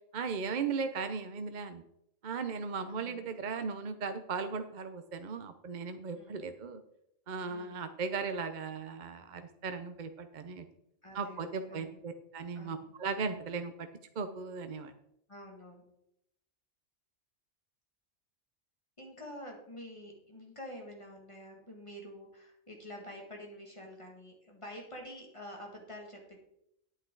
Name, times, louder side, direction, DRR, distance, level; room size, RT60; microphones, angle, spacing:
voice 1, 0.1-1.8 2.2-6.8 7.3-10.6 11.1-13.9 14.2-14.9, right 5 dB, 45° right, 8 dB, 0.7 m, -37 dB
voice 2, 2.8-3.3 6.1-6.4 7.5-7.9 11.0-12.0 12.5-12.9 15.3-15.8 19.0-26.4, left 1 dB, 25° left, 0 dB, 2.0 m, -48 dB
10.0 x 8.9 x 3.8 m, 0.78 s
omnidirectional pair, 1.2 m